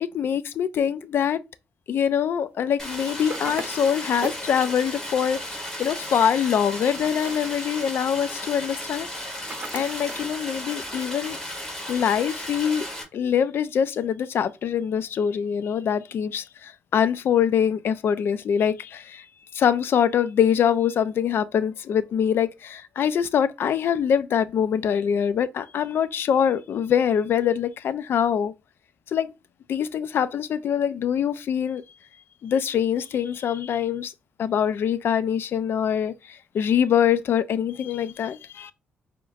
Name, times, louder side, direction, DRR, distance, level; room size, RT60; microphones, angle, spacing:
voice 1, 0.1-1.4 1.9-9.1 9.7-11.4 11.9-12.9 13.1-19.3 19.5-28.5 29.1-29.3 29.7-31.8 32.4-34.1 34.4-38.7, left 8 dB, 60° left, 0.5 m, -24 dB
Stream, 2.8-13.0, left 1 dB, 10° left, 2.3 m, -35 dB
sound 1, 3.3-4.5 6.8-7.6 9.5-10.4, right 4 dB, 35° right, 1.0 m, -38 dB
7.0 x 2.9 x 2.5 m
cardioid pair, 105°, 4 cm